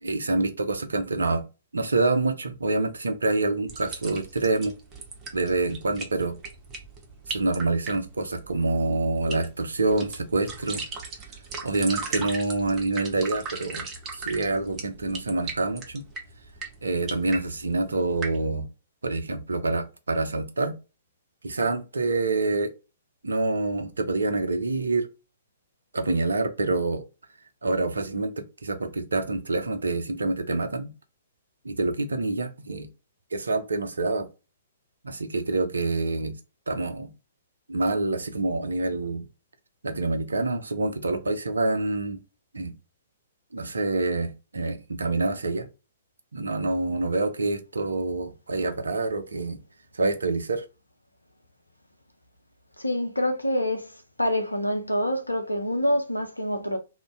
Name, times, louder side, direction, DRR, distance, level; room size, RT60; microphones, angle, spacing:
voice 1, 0.0-1.4 1.7-4.7 5.3-6.3 7.3-10.8 11.6-13.9 14.1-16.0 16.8-18.7 19.0-20.8 21.4-22.7 23.2-25.1 25.9-27.0 27.6-30.9 31.6-32.9 33.3-34.3 35.0-36.3 36.7-37.1 37.7-39.2 39.8-42.2 42.5-42.7 43.5-45.7 46.3-49.6 49.9-50.6, right 3 dB, 70° right, 0.5 m, -26 dB
sound 1, 3.7-18.5, right 4 dB, 20° right, 0.6 m, -39 dB
voice 2, 52.8-53.9 54.2-56.8, equal, 85° left, 0.6 m, -26 dB
2.6 x 2.2 x 3.2 m
figure-of-eight pair, 120°, 0 cm